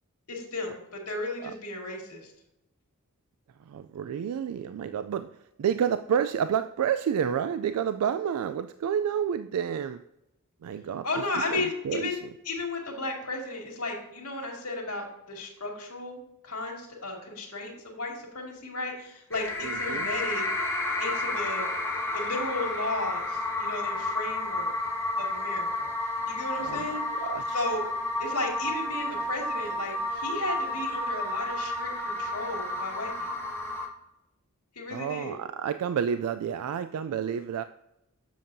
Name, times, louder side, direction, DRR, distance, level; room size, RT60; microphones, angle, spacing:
voice 1, 0.3-2.3 11.0-20.4 21.0-21.7 22.1-24.7 25.2-25.9 26.3-27.0 27.5-27.8 28.2-33.3 34.7-35.3, left 2 dB, 80° left, 0 dB, 2.1 m, -34 dB
voice 2, 3.7-5.3 5.6-10.0 10.6-11.1 11.5-12.2 19.6-20.1 26.6-27.6 34.9-37.6, right 8 dB, 80° right, 11 dB, 0.3 m, -29 dB
sound 1, 19.3-33.9, left 2 dB, 10° left, 1.2 m, -31 dB
7.6 x 7.0 x 2.6 m, 0.88 s
head